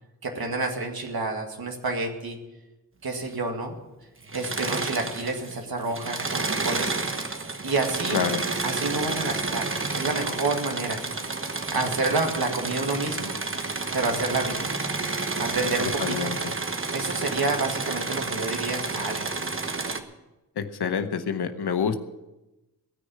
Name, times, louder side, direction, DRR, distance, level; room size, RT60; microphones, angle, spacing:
voice 1, 0.2-2.4 3.0-3.8 4.3-6.9 7.6-8.2 8.6-11.0 11.7-13.4 13.9-14.7 15.4-16.3 16.9-19.3, right 3 dB, 70° right, 2 dB, 2.1 m, -29 dB
Engine / Mechanisms, 4.2-5.6 5.9-20.0, right 3 dB, 30° right, 1.3 m, -30 dB
voice 2, 8.1-8.4 16.0-16.3 20.6-22.0, left 6 dB, 85° left, 8 dB, 1.0 m, -27 dB
17.5 x 6.5 x 8.7 m, 1.0 s
wide cardioid pair, 70°, 38 cm